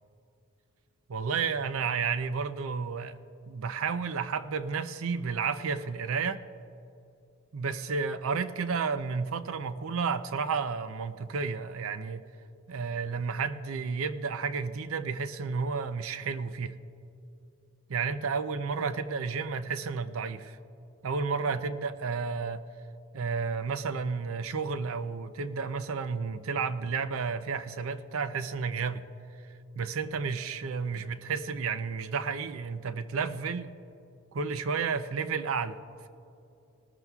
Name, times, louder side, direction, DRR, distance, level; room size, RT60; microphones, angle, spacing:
voice 1, 1.1-3.2 3.5-6.4 7.5-12.2 12.7-16.8 17.9-20.6 21.0-22.7 23.1-29.0 29.8-33.7 34.3-35.8, right 5 dB, 75° right, 12 dB, 0.5 m, -31 dB
20.5 x 13.5 x 2.4 m, 2.8 s
head